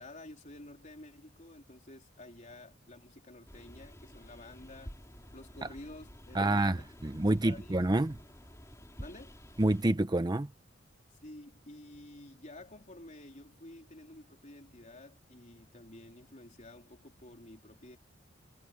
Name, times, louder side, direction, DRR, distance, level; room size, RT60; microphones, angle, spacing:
voice 1, 0.0-4.9 5.3-6.9 7.4-7.8 9.0-9.4 11.1-18.0, left 1 dB, 40° left, 3.7 m, -51 dB
sound 1, 3.5-9.8, equal, 15° left, 5.2 m, -51 dB
voice 2, 6.3-8.2 9.6-10.5, right 1 dB, 20° right, 0.7 m, -28 dB
head